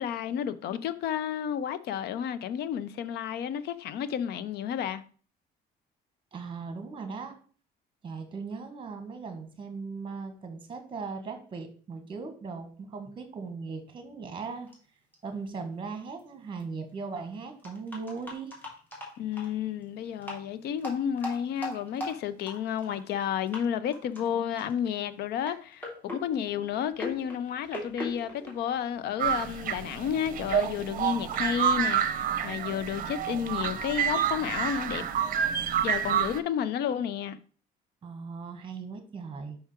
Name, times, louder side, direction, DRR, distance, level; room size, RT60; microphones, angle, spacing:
voice 1, 0.0-5.0 19.2-35.1 35.8-37.4, left 9 dB, 70° left, 0.6 m, -31 dB
voice 2, 6.3-7.3 8.0-14.7 15.2-18.5 38.0-39.6, right 4 dB, 30° right, 1.6 m, -38 dB
sound 1, 14.7-14.8 15.1-15.2 16.2-16.3 16.6-16.7 17.6-19.5 20.2-20.4 20.8-23.2 23.5-23.6 23.9-24.3 24.6-24.9 25.4-29.2, left 1 dB, 10° left, 2.8 m, -40 dB
sound 2, 29.2-36.4, right 8 dB, 55° right, 0.7 m, -28 dB
5.7 x 4.8 x 4.4 m
cardioid pair, 110°, 17 cm